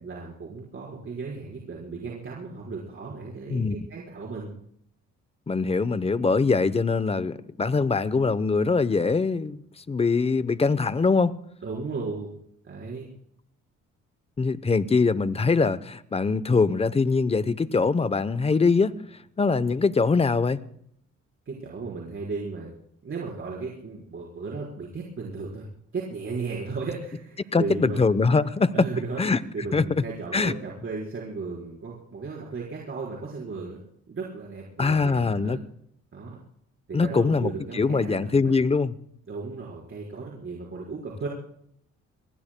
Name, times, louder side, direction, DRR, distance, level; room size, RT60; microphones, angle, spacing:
voice 1, 0.0-4.5 11.6-12.4 12.6-13.1 21.5-22.7 23.0-25.6 25.9-28.1 28.7-29.2 29.5-33.8 34.1-35.6 36.1-36.4 36.9-38.6 39.3-41.3, right 4 dB, 45° right, 4.4 m, -35 dB
voice 2, 5.5-9.6 9.9-11.4 14.4-19.0 19.4-20.6 27.5-28.9 29.2-29.4 29.7-30.0 30.3-30.5 34.8-35.6 36.9-38.9, left 4 dB, 20° left, 0.8 m, -23 dB
25.5 x 19.5 x 2.2 m
cardioid pair, 90°, 30 cm